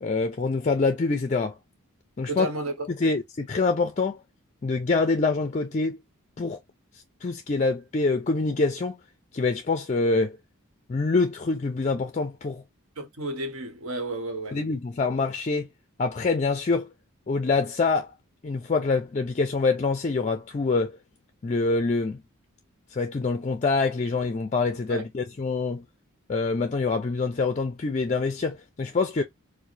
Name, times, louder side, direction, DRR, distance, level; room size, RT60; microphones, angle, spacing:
voice 1, 0.0-1.6 2.2-2.5 3.0-4.2 4.6-6.0 6.4-6.6 7.2-9.0 9.3-10.4 10.9-12.6 14.5-15.7 16.0-16.9 17.3-18.1 18.4-21.0 21.4-22.2 22.9-25.8 26.3-29.2, left 3 dB, 30° left, 0.4 m, -25 dB
voice 2, 2.3-2.9 13.0-14.6 24.9-25.0, right 2 dB, 75° right, 1.1 m, -32 dB
4.7 x 2.1 x 2.6 m
head